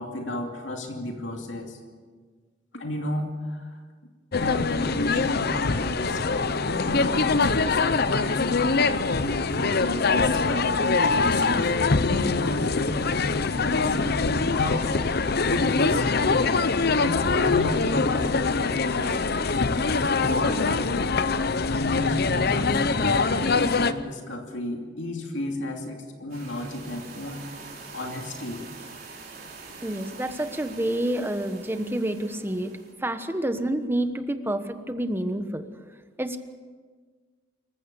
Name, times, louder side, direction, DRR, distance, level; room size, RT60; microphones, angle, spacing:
voice 1, 0.0-1.8 2.7-3.8 4.4-11.7 12.0-16.7 17.0-19.7 20.0-21.3 21.7-27.4 27.9-28.6, left 1 dB, 80° left, 2 dB, 2.7 m, -33 dB
sound 1, 4.3-23.9, left 4 dB, 55° left, 0.8 m, -23 dB
sound 2, 26.3-32.9, right 4 dB, 50° right, 4.1 m, -44 dB
voice 2, 29.8-35.7 36.2-36.4, right 1 dB, 10° right, 9 dB, 1.2 m, -28 dB
26.0 x 15.0 x 7.0 m, 1.5 s
head